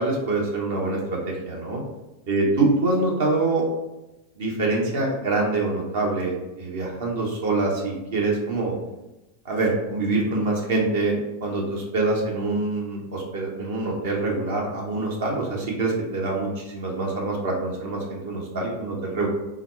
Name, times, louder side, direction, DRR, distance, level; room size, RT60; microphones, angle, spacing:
voice 1, 0.0-1.8 2.3-3.7 4.4-8.7 9.4-19.3, right 2 dB, 55° right, -1 dB, 1.0 m, -25 dB
3.9 x 2.4 x 4.4 m, 1.0 s
figure-of-eight pair, 90°, 0 cm